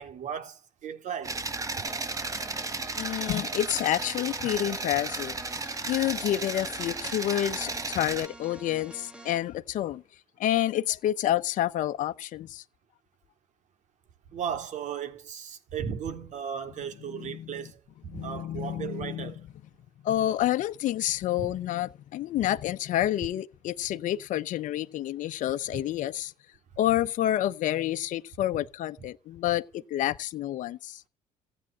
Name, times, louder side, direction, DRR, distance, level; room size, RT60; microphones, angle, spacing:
voice 1, 0.0-1.4 14.3-17.8 18.1-19.4 21.4-21.5, right 8 dB, 55° right, 3.6 m, -36 dB
sound 1, 1.2-8.3, right 3 dB, 25° right, 1.4 m, -34 dB
sound 2, 1.9-9.5, equal, 5° right, 2.3 m, -47 dB
voice 2, 3.0-5.3 5.8-10.0 10.4-12.6 17.1-17.6 18.1-19.3 20.0-26.3 26.8-31.0, left 13 dB, 65° left, 1.1 m, -29 dB
15.5 x 9.1 x 8.7 m
supercardioid pair, 85°, 14 cm